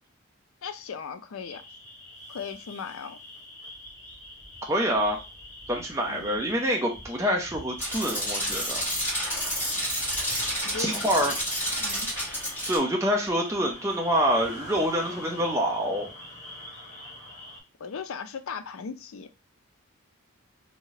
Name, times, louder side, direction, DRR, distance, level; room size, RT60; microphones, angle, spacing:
voice 1, 0.6-1.6 2.3-3.2 6.1-6.5 10.6-11.4 11.8-12.1 17.8-19.3, left 6 dB, 70° left, 0.4 m, -37 dB
sound 1, 1.4-17.6, left 1 dB, 35° left, 1.4 m, -44 dB
voice 2, 4.7-5.2 5.7-8.8 10.8-11.3 12.7-16.1, equal, 15° right, 0.6 m, -26 dB
sound 2, 7.8-12.8, equal, 10° left, 2.1 m, -30 dB
3.6 x 2.8 x 3.1 m
head